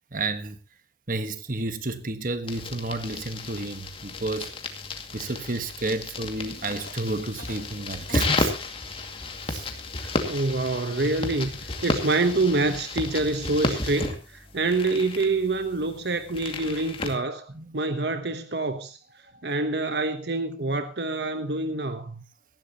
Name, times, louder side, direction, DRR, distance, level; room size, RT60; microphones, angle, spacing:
voice 1, 0.1-0.6 1.1-4.5 5.1-8.5 9.5-9.7 17.5-17.7 19.3-19.4, right 2 dB, 50° right, 1.5 m, -31 dB
sound 1, 2.5-17.2, left 2 dB, 30° left, 2.3 m, -33 dB
sound 2, 6.1-6.2 6.7-8.5 9.2-9.3 9.8-10.0, left 3 dB, 75° left, 2.3 m, -46 dB
voice 2, 10.0-19.0 19.4-22.2, right 2 dB, 70° right, 1.1 m, -26 dB
18.5 x 15.0 x 3.0 m
head